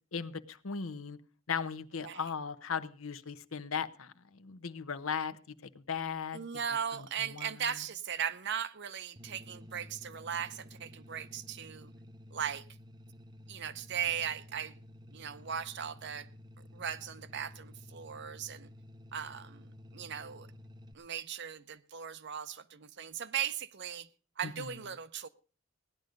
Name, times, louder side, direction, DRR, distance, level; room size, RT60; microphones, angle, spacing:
voice 1, 0.1-1.2 1.5-5.3 5.6-6.4 7.2-7.5 24.4-24.7, left 6 dB, 75° left, 0.9 m, -37 dB
voice 2, 6.3-11.9 12.3-12.7 13.5-14.8 15.1-16.3 16.7-18.7 19.1-20.5 20.9-24.1 24.4-25.3, right 8 dB, 55° right, 0.7 m, -38 dB
sound 1, 9.2-20.9, left 1 dB, 20° right, 0.6 m, -52 dB
17.0 x 11.0 x 5.1 m
head